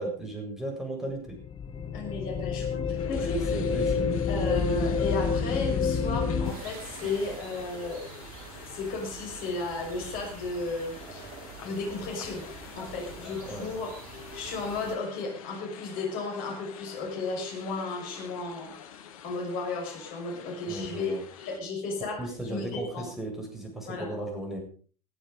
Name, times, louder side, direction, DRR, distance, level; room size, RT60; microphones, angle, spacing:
voice 1, 0.0-1.4 3.2-4.3 13.5-13.7 20.7-21.2 22.2-24.6, right 1 dB, ahead, 1 dB, 7.8 m, -36 dB
sound 1, 1.3-6.5, left 5 dB, 25° left, 1.7 m, -28 dB
voice 2, 1.9-3.6 4.3-8.0 8.7-11.3 11.6-12.4 12.8-13.9 14.3-18.9 19.2-22.2 22.5-23.1 23.9-24.1, left 3 dB, 45° left, 1 dB, 6.3 m, -34 dB
sound 2, 3.0-21.6, left 8 dB, 60° left, 1.9 m, -47 dB
sound 3, 6.4-15.0, right 4 dB, 50° right, 4.6 m, -45 dB
20.5 x 11.5 x 5.3 m, 0.42 s
figure-of-eight pair, 75°, 20 cm